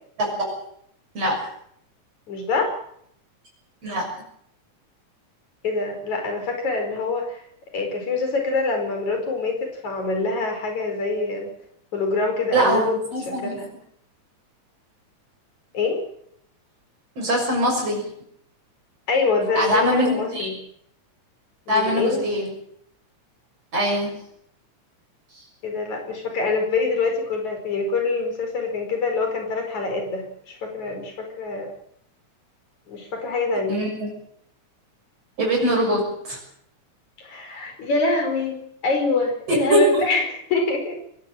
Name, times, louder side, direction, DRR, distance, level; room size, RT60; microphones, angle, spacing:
voice 1, 2.3-2.7 5.6-7.4 7.7-11.5 11.9-12.9 13.3-13.7 15.7-16.0 19.1-20.6 21.7-22.3 25.6-31.7 32.9-33.8 37.2-38.6 38.8-41.0, left 3 dB, 70° left, 4 dB, 6.2 m, -25 dB
voice 2, 12.5-13.6 17.2-18.0 19.6-20.5 21.7-22.5 23.7-24.2 33.7-34.1 35.4-36.4 39.5-40.1, equal, 55° right, -1 dB, 7.6 m, -22 dB
23.0 x 17.5 x 7.8 m, 0.70 s
omnidirectional pair, 3.4 m